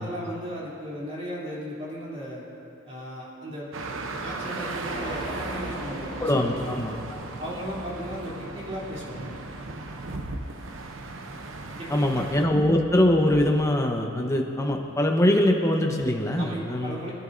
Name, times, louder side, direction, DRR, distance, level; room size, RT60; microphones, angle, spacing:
voice 1, 0.0-2.4 2.8-3.7 4.2-6.7 7.4-9.3 11.8-12.2 16.4-17.1, equal, 35° right, -6 dB, 3.3 m, -36 dB
sound 1, 3.7-12.5, right 2 dB, 85° right, 0.8 m, -37 dB
sound 2, 4.8-13.5, right 1 dB, 65° right, 1.4 m, -42 dB
voice 2, 6.2-7.2 11.9-17.0, left 1 dB, 15° left, 2 dB, 1.0 m, -23 dB
24.5 x 11.0 x 2.7 m, 2.6 s
head